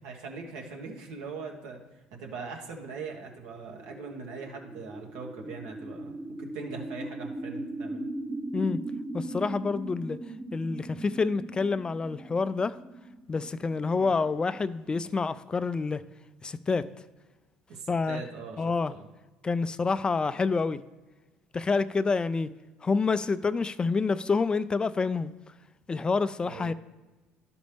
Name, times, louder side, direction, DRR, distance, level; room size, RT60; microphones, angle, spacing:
voice 1, 0.0-1.8 2.1-8.1 13.9-14.1 17.7-19.1 26.4-26.7, right 4 dB, 85° right, 1.5 m, -41 dB
sound 1, 3.2-15.0, right 2 dB, 5° right, 0.7 m, -39 dB
voice 2, 9.1-10.2 10.5-12.8 13.3-16.0 16.4-16.9 17.9-18.2 18.6-18.9 19.4-20.8 21.5-22.5 22.8-25.3 25.9-26.7, left 4 dB, 25° left, 0.3 m, -27 dB
11.5 x 5.1 x 3.5 m
supercardioid pair, 85°, 4 cm